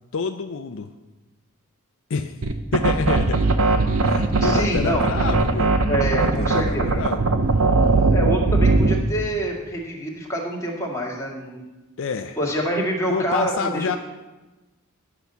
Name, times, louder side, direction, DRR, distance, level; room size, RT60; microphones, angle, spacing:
voice 1, 0.1-0.9 2.1-2.4 2.7-3.4 4.0-8.1 12.0-12.4 13.1-14.0, left 5 dB, 60° left, 7 dB, 0.5 m, -28 dB
sound 1, 2.4-9.1, right 3 dB, 70° right, 0.8 m, -19 dB
voice 2, 4.4-5.1 5.8-7.0 8.1-11.6 12.4-13.9, right 1 dB, 15° left, -3 dB, 2.0 m, -26 dB
10.5 x 5.8 x 6.8 m, 1.1 s
head